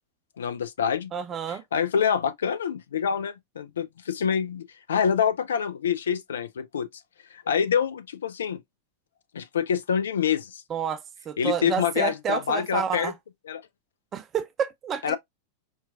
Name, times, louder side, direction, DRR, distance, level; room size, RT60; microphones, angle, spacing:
voice 1, 0.4-1.1 1.5-6.9 7.3-8.6 9.3-10.6 11.4-13.1 13.5-13.6 15.0-15.2, left 7 dB, 65° left, 0.4 m, -26 dB
voice 2, 1.1-1.6 10.7-11.0 11.3-13.1 14.1-15.2, right 7 dB, 25° right, 0.5 m, -29 dB
4.3 x 2.3 x 2.3 m
figure-of-eight pair, 90°, 0 cm